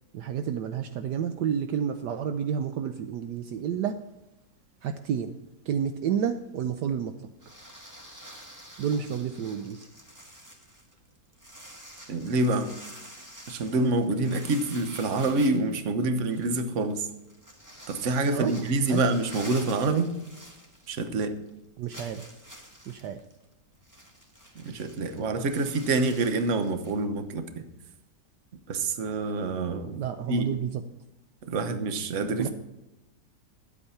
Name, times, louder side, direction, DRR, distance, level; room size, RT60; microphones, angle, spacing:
voice 1, 0.1-4.0 4.8-5.3 5.7-7.3 8.8-9.9 18.3-18.5 18.9-19.0 21.8-22.3 22.9-23.2 30.0-30.8 32.4-32.5, right 8 dB, 70° right, 9 dB, 1.2 m, -30 dB
sound 1, 7.4-21.2 21.5-21.6 21.9-27.0, equal, 10° right, 1.6 m, -48 dB
voice 2, 12.1-12.7 13.5-17.1 17.9-20.1 20.9-21.4 24.5-27.6 28.7-30.5 31.4-32.5, right 2 dB, 45° right, 9 dB, 1.2 m, -27 dB
11.5 x 8.4 x 5.7 m, 0.96 s
omnidirectional pair, 2.0 m